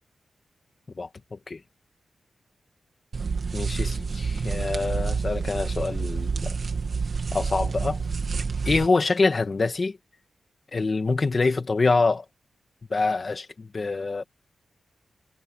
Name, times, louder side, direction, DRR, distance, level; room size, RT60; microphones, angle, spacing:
voice 1, 1.0-1.6 3.5-6.6 7.3-8.0 8.6-10.0 10.7-12.3 12.9-14.2, left 3 dB, 35° left, 2.2 m, -25 dB
sound 1, 3.1-8.9, right 5 dB, 45° right, 2.6 m, -28 dB
wide cardioid pair, 155°, 0 cm